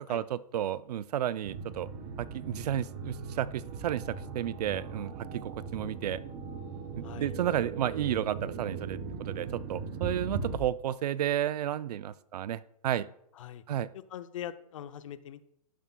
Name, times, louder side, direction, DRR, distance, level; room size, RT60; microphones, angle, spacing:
voice 1, 0.0-1.9 2.2-6.2 7.0-13.1 13.7-13.9, right 11 dB, 80° right, 17 dB, 0.5 m, -32 dB
sound 1, 1.4-10.6, right 4 dB, 30° right, 0.9 m, -39 dB
voice 2, 7.0-7.3 13.4-13.6 14.1-15.4, left 11 dB, 55° left, 12 dB, 0.6 m, -42 dB
11.5 x 9.4 x 2.2 m, 0.74 s
hypercardioid pair, 170°, 20 cm